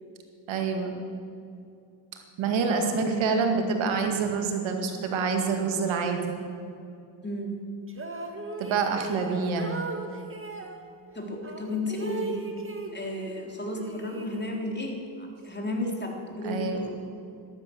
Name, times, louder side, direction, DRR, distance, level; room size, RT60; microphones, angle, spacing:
voice 1, 0.5-1.0 2.4-6.2 8.6-9.8 16.4-16.8, right 5 dB, 85° right, 4 dB, 2.1 m, -27 dB
voice 2, 2.5-3.4 7.2-7.6 11.1-12.5 12.9-17.1, left 1 dB, 25° left, 1 dB, 3.6 m, -33 dB
sound 1, 7.9-10.8 11.4-13.4 13.7-14.8, right 3 dB, 25° right, 2.1 m, -37 dB
13.0 x 12.0 x 7.9 m, 2.5 s
cardioid pair, 70°, 45 cm